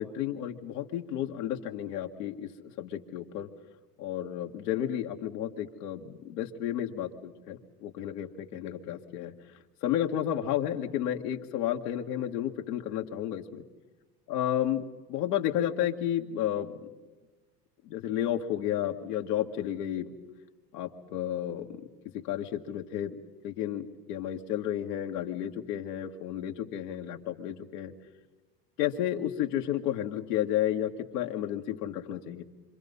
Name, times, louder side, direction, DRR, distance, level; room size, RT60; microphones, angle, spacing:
voice 1, 0.0-3.5 4.0-9.3 9.8-13.6 14.3-16.9 17.8-20.1 20.7-21.9 22.1-27.9 28.8-32.4, left 11 dB, 75° left, 2 dB, 2.1 m, -32 dB
27.5 x 25.5 x 5.6 m, 1.2 s
hypercardioid pair, 85°, 47 cm